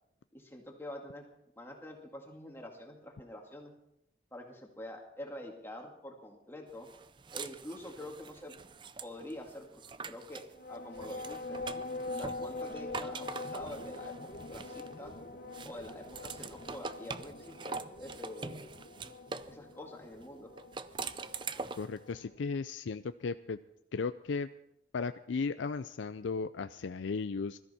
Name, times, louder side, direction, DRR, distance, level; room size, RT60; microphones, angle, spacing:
voice 1, 0.3-1.2 1.6-3.7 4.3-6.9 7.3-8.5 9.0-11.6 12.1-15.2 15.6-18.7 19.5-20.5, left 1 dB, 10° left, 1 dB, 2.0 m, -46 dB
sound 1, 6.9-10.5 10.9-15.1 15.5-19.5 20.6-22.0, right 4 dB, 25° right, 0.5 m, -44 dB
sound 2, 10.5-22.4, left 2 dB, 55° left, 1.3 m, -44 dB
voice 2, 21.8-23.6 23.9-24.5 24.9-27.6, left 4 dB, 80° left, 11 dB, 0.4 m, -35 dB
21.0 x 13.5 x 4.3 m, 0.81 s
head